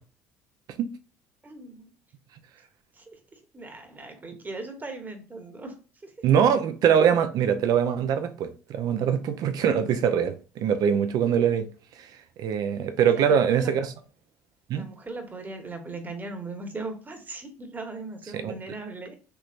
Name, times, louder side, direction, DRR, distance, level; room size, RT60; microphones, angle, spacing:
voice 1, 1.4-1.9 2.9-5.8 6.0-6.2 13.1-13.7 14.7-19.1, right 3 dB, 25° right, 1.1 m, -39 dB
voice 2, 6.2-11.7 12.0-12.1 12.4-13.9 14.7-14.9 18.3-18.5, right 8 dB, 60° right, 0.6 m, -23 dB
3.2 x 3.0 x 2.5 m
hypercardioid pair, 70°, 7 cm